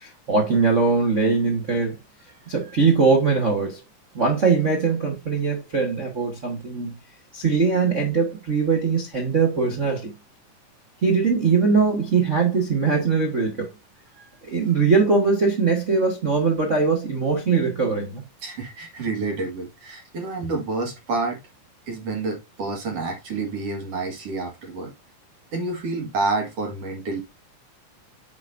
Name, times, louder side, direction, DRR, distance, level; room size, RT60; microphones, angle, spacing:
voice 1, 0.0-1.9 2.5-3.8 4.1-6.9 7.3-10.1 11.0-13.7 14.5-18.2, right 4 dB, 85° right, 0.6 m, -21 dB
voice 2, 18.4-21.4 21.9-24.9 25.5-27.2, right 3 dB, 50° right, 2.6 m, -28 dB
9.0 x 6.1 x 2.6 m
omnidirectional pair, 4.0 m